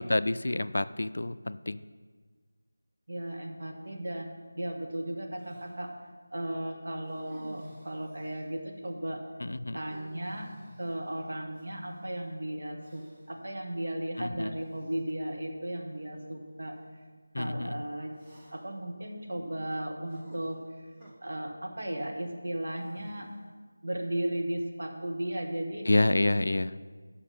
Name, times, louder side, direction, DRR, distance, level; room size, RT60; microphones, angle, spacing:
voice 1, 0.0-1.8 9.4-9.8 14.2-14.5 17.3-17.8 25.9-26.8, left 2 dB, 65° left, 14 dB, 0.3 m, -28 dB
voice 2, 3.1-5.9 6.3-9.2 9.7-16.7 17.4-18.1 18.5-20.9 21.2-23.3 23.8-25.9, right 1 dB, 60° right, 1 dB, 1.4 m, -35 dB
sound 1, 5.4-5.8 7.0-8.6 9.7-12.0 12.8-13.4 14.5-15.0 15.9-16.0 18.1-18.8 20.1-21.1 22.7-23.5, right 1 dB, 15° right, 1.2 m, -54 dB
8.2 x 5.7 x 5.6 m, 1.5 s
figure-of-eight pair, 165°, 0 cm